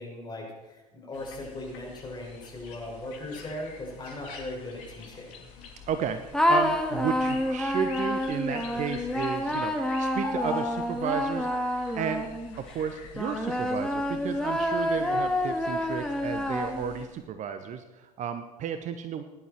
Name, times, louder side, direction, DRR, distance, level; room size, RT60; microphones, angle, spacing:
voice 1, 0.0-5.5, left 1 dB, 20° left, 0 dB, 5.9 m, -39 dB
sound 1, 1.1-17.0, left 4 dB, 60° left, 2.8 m, -45 dB
voice 2, 5.9-11.5 11.9-12.3 12.6-19.2, right 7 dB, 40° right, 9 dB, 1.0 m, -33 dB
feminine voice singing random melody, 6.3-12.6 13.1-17.1, left 1 dB, 5° left, 1.6 m, -28 dB
18.0 x 11.0 x 4.5 m, 1.1 s
figure-of-eight pair, 70°, 20 cm